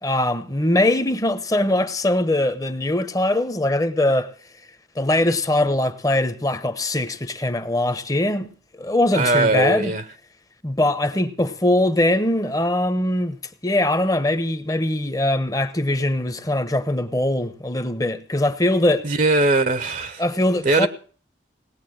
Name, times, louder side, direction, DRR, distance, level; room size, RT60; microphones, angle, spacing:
voice 1, 0.0-4.3 5.0-8.5 8.8-9.9 10.6-13.4 13.6-19.1 20.2-20.9, left 1 dB, 20° left, 1.0 m, -21 dB
voice 2, 9.1-10.0 19.0-20.2 20.6-20.9, right 2 dB, 45° right, 0.8 m, -20 dB
18.5 x 8.0 x 7.8 m
head